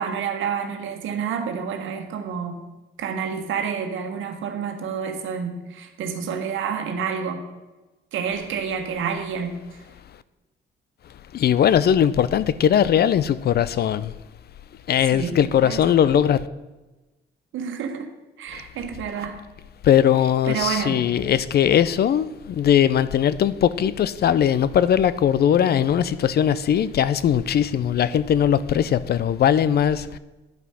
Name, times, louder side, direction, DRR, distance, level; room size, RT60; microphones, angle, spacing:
voice 1, 0.0-2.7 3.0-7.5 8.1-9.6 15.1-16.0 17.5-18.1 18.4-19.4 20.4-21.0, right 6 dB, 80° right, 1.4 m, -29 dB
voice 2, 11.3-14.1 14.9-16.5 18.5-18.6 19.8-30.2, left 9 dB, 55° left, 0.5 m, -20 dB
10.5 x 5.6 x 6.2 m
cardioid pair, 90°, 20 cm